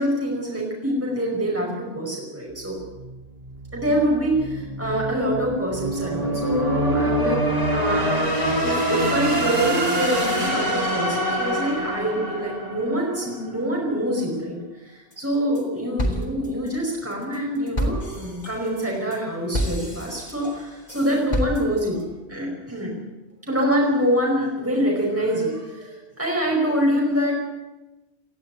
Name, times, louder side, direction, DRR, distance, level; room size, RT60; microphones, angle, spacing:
voice 1, 0.0-2.8 3.7-7.4 7.7-14.6 14.8-22.0 22.3-22.9 23.4-27.3, equal, 10° right, -2 dB, 5.1 m, -25 dB
sound 1, 2.6-13.6, right 1 dB, 35° right, 3.3 m, -25 dB
sound 2, 15.1-15.7 16.0-22.0, equal, 35° left, 3.4 m, -30 dB
19.0 x 15.0 x 9.2 m, 1.1 s
omnidirectional pair, 1.2 m